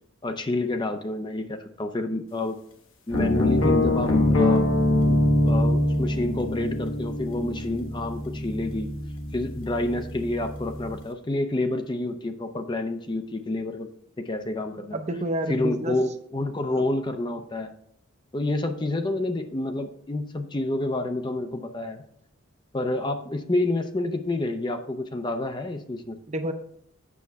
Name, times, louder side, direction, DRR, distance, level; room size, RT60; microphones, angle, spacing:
voice 1, 0.2-2.6 3.1-4.7 5.1-8.9 9.3-13.9 14.2-15.0 15.5-17.7 18.3-22.0 22.7-26.2, left 2 dB, 20° left, 7 dB, 0.5 m, -29 dB
sound 1, 3.1-11.0, left 1 dB, 70° left, 1.1 m, -24 dB
voice 2, 14.9-16.0 16.7-16.8 26.3-26.5, right 1 dB, 30° right, 7 dB, 0.6 m, -29 dB
8.4 x 6.7 x 3.5 m, 0.66 s
head